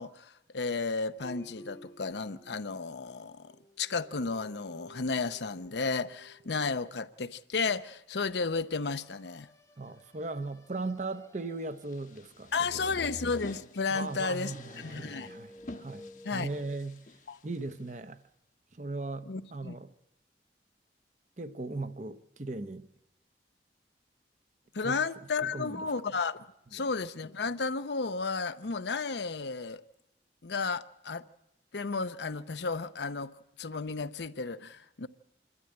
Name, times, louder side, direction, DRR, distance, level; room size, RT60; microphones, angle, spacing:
voice 1, 0.0-3.5 3.8-9.5 12.5-15.3 16.2-16.5 17.3-17.4 19.3-19.8 24.7-26.4 26.7-29.8 30.4-31.2 31.7-33.3 33.6-35.1, left 4 dB, 75° left, 0.7 m, -33 dB
sound 1, 1.2-3.2 3.4-7.3 8.9-12.1 12.4-16.8, left 1 dB, 15° left, 0.9 m, -53 dB
voice 2, 9.8-12.7 13.9-17.0 17.4-18.2 18.7-19.9 21.4-22.9 24.8-25.0 25.4-25.9, right 3 dB, 40° right, 0.8 m, -38 dB
sound 2, 11.8-17.9, left 2 dB, 45° left, 1.1 m, -49 dB
26.0 x 12.5 x 9.9 m
head